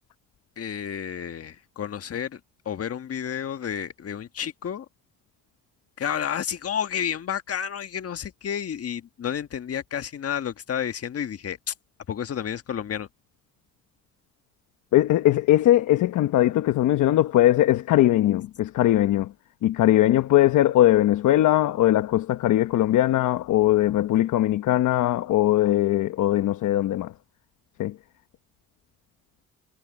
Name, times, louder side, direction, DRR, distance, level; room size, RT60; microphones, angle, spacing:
voice 1, 0.6-2.4 2.6-4.8 6.0-11.7 12.1-13.1, left 8 dB, 50° left, 1.5 m, -31 dB
voice 2, 14.9-19.3 19.6-27.1 27.8-27.9, left 14 dB, 80° left, 1.1 m, -20 dB
cardioid pair, 90°, 30 cm